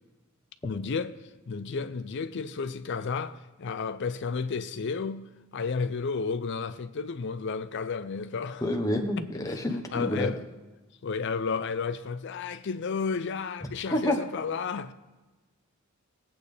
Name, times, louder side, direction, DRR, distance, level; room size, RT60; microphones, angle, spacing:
voice 1, 0.6-1.1 1.5-5.3 5.5-8.6 9.4-9.6 9.9-10.4 11.0-14.9, left 5 dB, 55° left, 0.5 m, -32 dB
voice 2, 8.6-10.3 13.9-14.2, left 1 dB, 15° left, 1.0 m, -28 dB
19.5 x 8.7 x 3.3 m
head